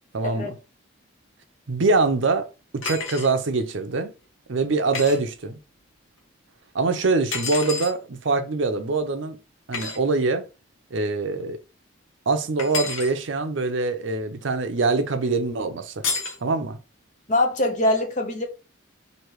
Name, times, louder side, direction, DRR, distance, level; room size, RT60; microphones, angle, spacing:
voice 1, 0.1-0.6 1.7-2.5 2.7-4.1 4.5-5.6 6.7-9.4 9.7-10.4 10.9-11.6 12.3-16.0 16.4-16.8, right 3 dB, 65° right, 0.6 m, -24 dB
sound 1, 2.8-3.3 4.9-5.2 7.3-7.9 9.7-10.0 12.6-13.1 16.0-16.4, left 4 dB, 75° left, 1.1 m, -29 dB
voice 2, 17.3-18.5, left 1 dB, 35° left, 0.8 m, -23 dB
3.1 x 2.8 x 4.5 m
head